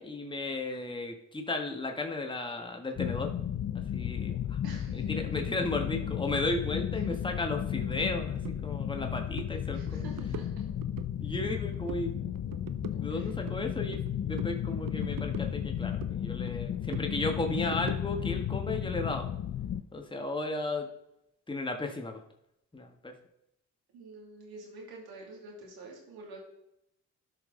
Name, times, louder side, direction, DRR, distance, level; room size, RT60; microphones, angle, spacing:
voice 1, 0.0-3.3 3.9-4.3 4.9-10.0 11.2-12.1 13.0-19.3 19.9-20.9 21.5-22.2 22.7-23.1, left 2 dB, 15° left, 3 dB, 1.4 m, -34 dB
sound 1, 3.0-19.8, left 10 dB, 45° left, 0.6 m, -34 dB
voice 2, 4.6-5.4 7.1-7.2 9.5-10.6 13.1-13.3 23.9-26.4, right 3 dB, 85° right, 0 dB, 2.6 m, -48 dB
sound 2, 8.4-8.6 8.9-9.1 9.3-9.5 9.9-11.1 11.4-12.1 12.4-14.1 14.4-16.2 16.5-18.3, right 10 dB, 65° right, 0.7 m, -44 dB
12.5 x 5.5 x 3.8 m, 0.82 s
supercardioid pair, 55°, 36 cm